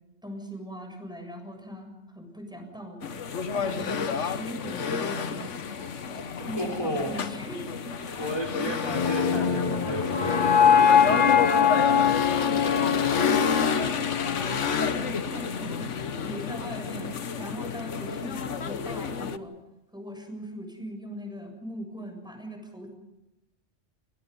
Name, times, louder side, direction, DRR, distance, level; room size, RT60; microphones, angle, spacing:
voice 1, 0.2-3.2 3.5-5.5 5.8-5.9 6.4-7.7 8.0-8.2 10.7-11.7 12.3-15.9 16.2-19.5 19.9-22.9, equal, 5° right, 3 dB, 7.3 m, -40 dB
sound 1, 3.0-19.4, left 5 dB, 75° left, 1.5 m, -30 dB
voice 2, 6.4-7.1 8.1-10.8 11.6-12.1, left 1 dB, 25° left, 0 dB, 3.9 m, -33 dB
sound 2, 8.9-15.0, left 7 dB, 45° left, 1.2 m, -22 dB
29.0 x 27.0 x 5.5 m, 0.92 s
omnidirectional pair, 1.3 m